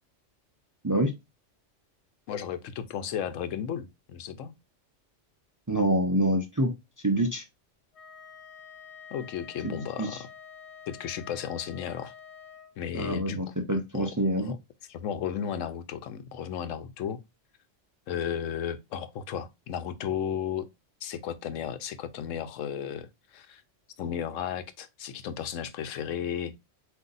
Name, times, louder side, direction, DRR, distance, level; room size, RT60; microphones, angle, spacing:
voice 1, 2.3-4.5 9.1-10.3 10.9-12.1 12.8-13.4 13.7-14.6 14.9-17.2 18.1-20.7 21.0-23.6 24.0-26.5, left 8 dB, 85° left, 1.0 m, -34 dB
voice 2, 5.7-6.7 7.0-7.4 9.6-10.2 12.9-14.5, right 1 dB, 25° right, 0.5 m, -26 dB
Wind instrument woodwind instrument, 7.9-12.8, left 7 dB, 65° left, 1.2 m, -48 dB
7.7 x 2.7 x 2.5 m
omnidirectional pair, 1.3 m